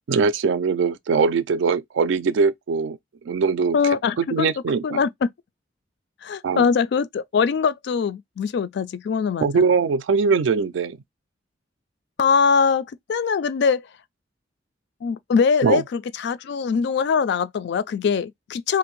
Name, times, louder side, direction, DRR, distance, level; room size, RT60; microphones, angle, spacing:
voice 1, 0.1-3.0 3.3-3.8 4.2-5.0 6.4-6.7 9.4-11.0 15.6-15.8, right 5 dB, 75° right, 0.4 m, -21 dB
voice 2, 3.7-4.5 4.8-5.3 6.2-9.6 12.2-13.8 15.0-18.8, left 5 dB, 60° left, 0.3 m, -22 dB
2.7 x 2.5 x 3.0 m
head